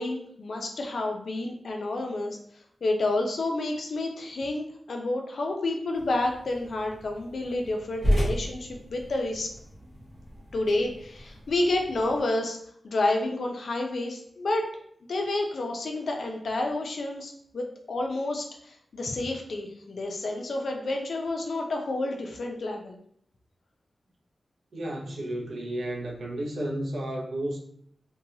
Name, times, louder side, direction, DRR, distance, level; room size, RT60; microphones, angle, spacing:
voice 1, 0.0-2.4 2.8-9.5 10.5-12.6 12.8-14.7 15.1-23.0, left 2 dB, 70° left, 2 dB, 0.5 m, -29 dB
sound 1, 5.9-12.2, equal, 35° right, 1.0 m, -33 dB
voice 2, 24.7-27.6, right 1 dB, 85° right, 0 dB, 0.5 m, -32 dB
2.7 x 2.2 x 2.7 m, 0.67 s
wide cardioid pair, 125°, 0 cm